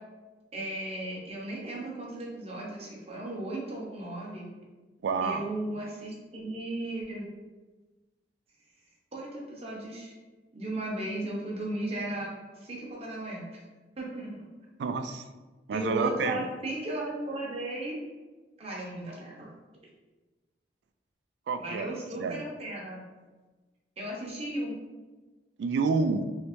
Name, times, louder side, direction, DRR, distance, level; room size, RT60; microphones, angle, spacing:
voice 1, 0.5-4.5 5.2-7.3 9.1-10.1 10.5-12.3 12.6-13.6 14.0-14.5 15.7-18.0 18.6-19.5 21.6-23.0 24.0-24.8, right 1 dB, 35° right, -3 dB, 0.8 m, -35 dB
voice 2, 5.0-5.5 14.8-15.2 15.7-16.4 21.5-21.9 22.2-22.4 25.6-26.3, right 4 dB, 70° right, 8 dB, 0.3 m, -28 dB
3.2 x 2.8 x 3.0 m, 1.2 s
head